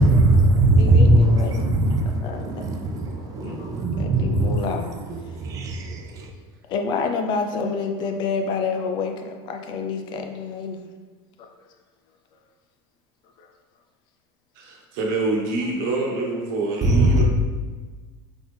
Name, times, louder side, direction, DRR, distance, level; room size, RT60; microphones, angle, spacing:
voice 1, 0.0-4.7 5.1-6.3 16.8-17.2, right 2 dB, 30° right, 3 dB, 0.5 m, -20 dB
voice 2, 0.7-1.9 2.2-2.8 3.2-5.0 6.7-10.8 11.4-11.5 13.4-13.5, left 5 dB, 40° left, 5 dB, 0.4 m, -29 dB
voice 3, 14.5-17.2, right 2 dB, 65° right, -1 dB, 1.1 m, -26 dB
4.0 x 3.9 x 3.3 m, 1.4 s
cardioid pair, 165°, 13 cm